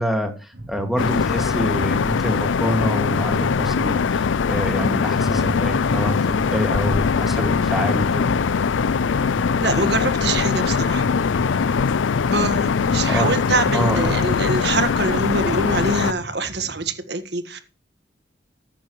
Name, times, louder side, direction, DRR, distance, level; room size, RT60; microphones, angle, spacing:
voice 1, 0.0-8.3 13.1-13.4 13.7-14.2, equal, ahead, 3 dB, 2.1 m, -26 dB
sound 1, 0.5-16.9, right 1 dB, 85° right, 3.6 m, -38 dB
sound 2, 1.0-16.1, left 5 dB, 90° left, 0.5 m, -21 dB
voice 2, 9.6-11.0 12.3-17.6, right 2 dB, 60° right, 9 dB, 1.6 m, -24 dB
14.5 x 10.0 x 3.2 m, 0.32 s
head